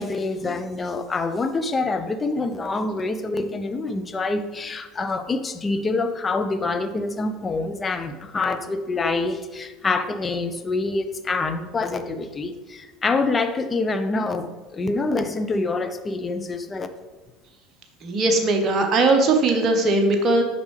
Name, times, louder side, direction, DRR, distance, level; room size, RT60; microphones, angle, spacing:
voice 1, 0.0-16.9, left 3 dB, 25° left, 8 dB, 0.7 m, -26 dB
voice 2, 18.0-20.4, right 2 dB, 35° right, 3 dB, 0.9 m, -19 dB
7.9 x 5.4 x 3.3 m, 1.2 s
hypercardioid pair, 70°, 0 cm